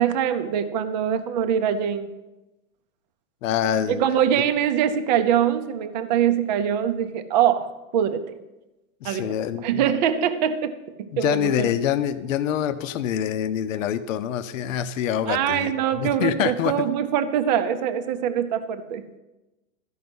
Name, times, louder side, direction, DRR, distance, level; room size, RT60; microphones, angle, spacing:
voice 1, 0.0-2.1 3.9-8.3 9.0-9.3 9.6-10.7 11.0-11.7 15.3-19.0, right 9 dB, 35° right, 9 dB, 0.6 m, -23 dB
voice 2, 3.4-4.1 9.0-9.8 11.1-16.7, left 10 dB, 70° left, 10 dB, 0.8 m, -25 dB
13.0 x 5.5 x 7.8 m, 1.0 s
supercardioid pair, 175°, 41 cm